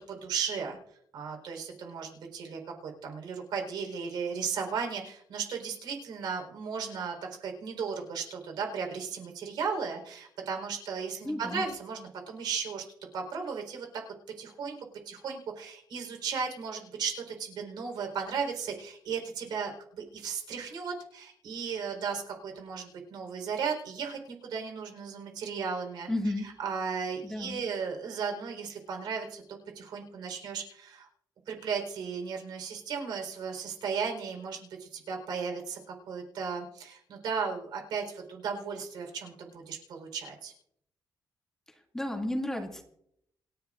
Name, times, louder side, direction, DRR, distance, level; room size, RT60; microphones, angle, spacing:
voice 1, 0.1-0.8 1.1-7.2 7.4-12.8 13.1-13.9 14.4-14.8 15.1-19.7 20.1-26.1 26.6-31.1 31.5-35.8 36.1-40.5, right 6 dB, 80° right, 2 dB, 4.3 m, -35 dB
voice 2, 11.2-11.6 26.1-26.5 27.2-27.6 41.7-42.8, left 1 dB, 5° left, 0 dB, 2.4 m, -33 dB
28.5 x 11.0 x 2.5 m, 0.71 s
cardioid pair, 155°, 7 cm